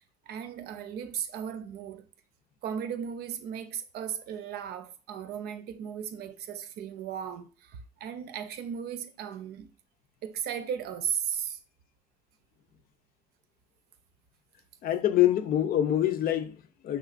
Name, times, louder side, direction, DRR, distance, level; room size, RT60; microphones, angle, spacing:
voice 1, 0.3-2.1 2.6-9.7 10.2-11.6, right 8 dB, 70° right, 0.6 m, -36 dB
voice 2, 14.8-17.0, left 12 dB, 60° left, 0.6 m, -25 dB
6.1 x 3.0 x 2.5 m
cardioid pair, 110°, 17 cm